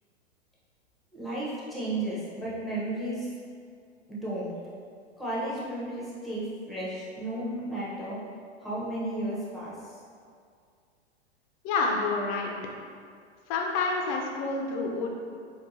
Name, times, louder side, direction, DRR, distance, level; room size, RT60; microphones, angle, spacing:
voice 1, 1.1-3.3 4.1-4.5 5.2-8.2 8.6-10.0, right 1 dB, ahead, -8 dB, 0.8 m, -33 dB
voice 2, 11.6-12.5 13.5-15.1, left 3 dB, 35° left, 0 dB, 0.5 m, -28 dB
4.5 x 2.2 x 2.6 m, 2.2 s
hypercardioid pair, 105°, 34 cm